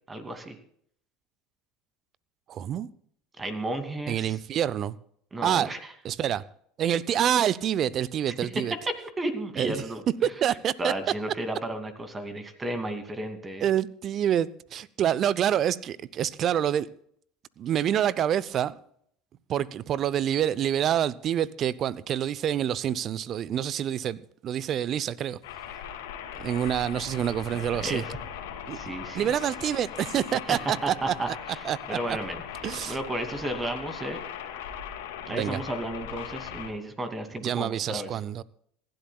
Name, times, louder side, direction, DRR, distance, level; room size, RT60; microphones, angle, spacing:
voice 1, 0.1-0.6 3.4-4.4 5.3-5.8 8.3-8.5 8.9-10.5 10.8-13.7 27.8-28.2 28.7-29.3 30.5-30.6 30.8-32.4 32.8-34.2 35.3-38.2, right 1 dB, 20° right, 2.6 m, -33 dB
voice 2, 2.5-2.9 4.1-4.9 5.4-5.7 6.0-6.4 6.8-8.7 9.6-9.8 10.2-10.9 13.6-16.9 17.6-18.8 19.5-25.4 26.4-28.0 28.7-28.8 29.1-31.3 31.6-32.2 32.6-33.0 35.3-35.6 37.4-38.4, right 10 dB, 45° right, 0.7 m, -27 dB
sound 1, 25.4-36.7, left 9 dB, 70° left, 2.2 m, -39 dB
26.5 x 12.0 x 2.4 m
figure-of-eight pair, 70°, 0 cm